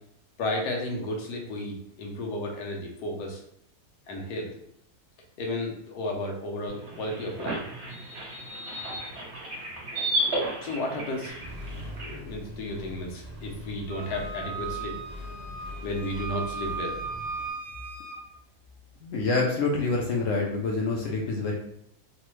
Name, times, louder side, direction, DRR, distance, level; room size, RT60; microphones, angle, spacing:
voice 1, 0.4-3.4 4.1-4.5 5.4-7.6 10.6-11.3 12.0-15.0 15.8-17.0, left 1 dB, 80° left, 1 dB, 1.2 m, -33 dB
sound 1, 6.7-12.2, right 1 dB, 50° right, 1.1 m, -33 dB
Accelerating revving vroom, 11.3-17.5, left 1 dB, 20° right, 0.3 m, -42 dB
Wind instrument woodwind instrument, 13.9-18.2, right 5 dB, 80° right, 0.5 m, -37 dB
voice 2, 19.0-21.5, left 3 dB, 65° left, -1 dB, 0.9 m, -26 dB
3.2 x 2.1 x 3.0 m, 0.71 s
omnidirectional pair, 1.7 m